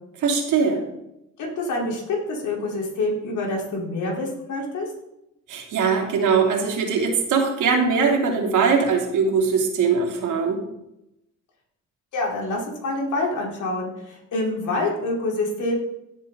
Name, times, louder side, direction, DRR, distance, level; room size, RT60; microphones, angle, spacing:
voice 1, 0.2-0.8 5.5-10.6, right 5 dB, 80° right, 1 dB, 3.0 m, -21 dB
voice 2, 1.4-4.9 12.1-15.7, left 2 dB, 80° left, -2 dB, 4.2 m, -26 dB
16.5 x 7.4 x 4.0 m, 0.86 s
cardioid pair, 90°, 30 cm